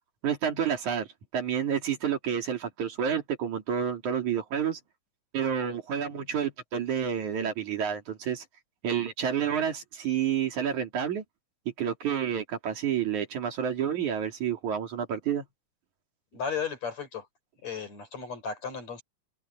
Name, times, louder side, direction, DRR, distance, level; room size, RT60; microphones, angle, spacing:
voice 1, 0.2-1.1 1.3-4.8 5.3-8.4 8.8-11.2 11.8-15.4, right 8 dB, 65° right, 4.2 m, -29 dB
voice 2, 16.3-17.3 17.6-19.0, left 6 dB, 55° left, 6.7 m, -34 dB
open air
omnidirectional pair, 3.8 m